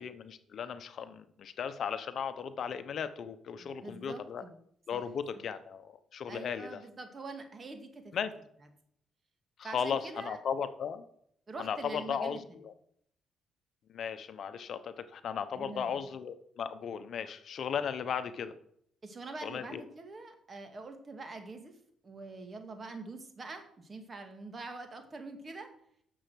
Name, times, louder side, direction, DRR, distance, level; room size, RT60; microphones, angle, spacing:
voice 1, 0.0-4.4 4.9-6.8 8.1-8.3 9.6-11.0 11.6-12.7 13.9-18.5 19.4-19.8, left 7 dB, 60° left, 11 dB, 0.9 m, -36 dB
voice 2, 3.6-4.6 4.9-5.0 5.3-5.4 6.3-8.2 9.6-10.4 11.5-12.6 15.6-16.2 19.0-21.8 22.0-25.7, right 3 dB, 35° right, 6 dB, 2.1 m, -45 dB
10.0 x 7.0 x 6.3 m, 0.69 s
cardioid pair, 90°, 0 cm